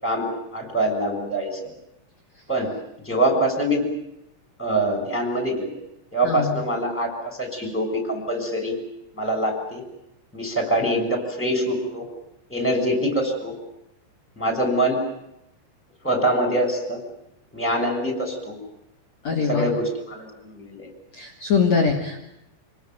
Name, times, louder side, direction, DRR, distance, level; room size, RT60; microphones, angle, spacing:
voice 1, 0.0-1.7 2.5-2.7 3.0-3.8 4.6-5.7 6.1-8.8 9.1-9.8 10.3-12.1 12.5-13.5 14.4-15.0 16.0-17.0 17.5-18.6 19.4-20.9, right 1 dB, ahead, 4 dB, 6.2 m, -24 dB
voice 2, 19.2-19.7 21.1-22.2, left 5 dB, 40° left, 4 dB, 2.9 m, -22 dB
28.5 x 20.0 x 9.3 m, 0.83 s
omnidirectional pair, 6.0 m